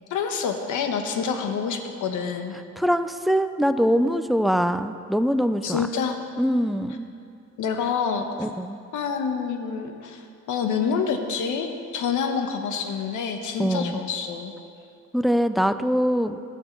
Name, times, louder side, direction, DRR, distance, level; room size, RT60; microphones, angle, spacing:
voice 1, 0.1-2.5 5.6-6.2 7.6-8.3 8.9-14.5, left 6 dB, 80° left, 5 dB, 1.2 m, -27 dB
voice 2, 2.8-5.8 6.4-7.1 8.4-8.8 13.6-14.0 15.1-16.4, equal, ahead, 10 dB, 0.4 m, -23 dB
19.0 x 6.6 x 4.6 m, 2.4 s
cardioid pair, 90°, 30 cm